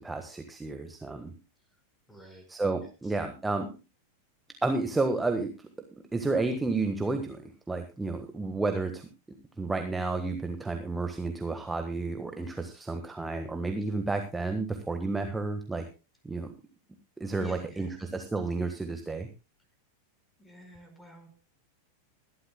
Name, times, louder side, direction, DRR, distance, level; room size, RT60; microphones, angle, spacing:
voice 1, 0.0-1.3 2.5-3.7 4.6-5.7 6.1-9.1 9.6-15.8 16.2-16.5 17.2-19.3, right 3 dB, 10° right, 6 dB, 1.4 m, -31 dB
voice 2, 2.1-2.5 2.8-3.2 17.3-18.0 20.4-21.3, equal, 10° left, 5 dB, 4.9 m, -50 dB
21.5 x 12.0 x 2.2 m, 0.30 s
figure-of-eight pair, 90°, 0 cm